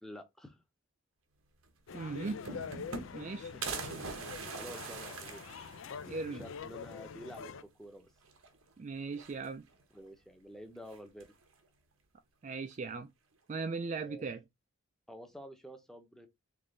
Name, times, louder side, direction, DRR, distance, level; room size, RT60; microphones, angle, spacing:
voice 1, 0.0-0.6 3.5-3.8 4.2-5.4 6.3-8.1 9.9-11.3 14.0-14.3 15.1-16.3, equal, ahead, 0.7 m, -50 dB
sound 1, 1.6-1.7 2.0-3.3 3.6-6.2 6.6-6.7 7.0-7.1 8.2-8.7 9.1-9.8 10.9-11.4, right 4 dB, 90° right, 1.0 m, -43 dB
sound 2, 1.9-7.6, left 6 dB, 70° left, 0.4 m, -45 dB
voice 2, 1.9-2.4 3.1-3.5 6.1-6.5 8.8-9.6 12.4-13.1 13.5-14.4, right 4 dB, 35° right, 0.3 m, -38 dB
3.5 x 3.3 x 3.8 m
head